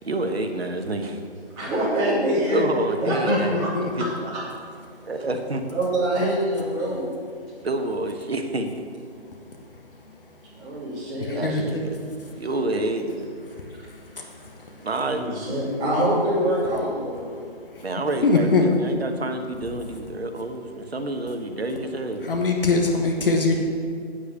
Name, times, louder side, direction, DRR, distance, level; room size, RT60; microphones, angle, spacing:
voice 1, 0.0-1.2 2.5-4.1 5.0-5.7 7.6-8.8 11.3-12.0 12.3-13.3 14.8-15.2 17.8-22.3, right 2 dB, 65° right, 6 dB, 1.3 m, -28 dB
voice 2, 1.6-2.6 3.0-3.7 4.0-4.4 5.7-7.0 10.6-11.8 15.1-17.3, right 1 dB, 15° right, -9 dB, 3.2 m, -25 dB
voice 3, 3.1-4.1 10.1-10.2 11.2-11.9 14.2-14.5 17.7-17.8 18.2-18.6 22.2-23.6, left 3 dB, 55° left, 1 dB, 1.4 m, -23 dB
8.8 x 8.1 x 6.9 m, 2.2 s
figure-of-eight pair, 150°, 33 cm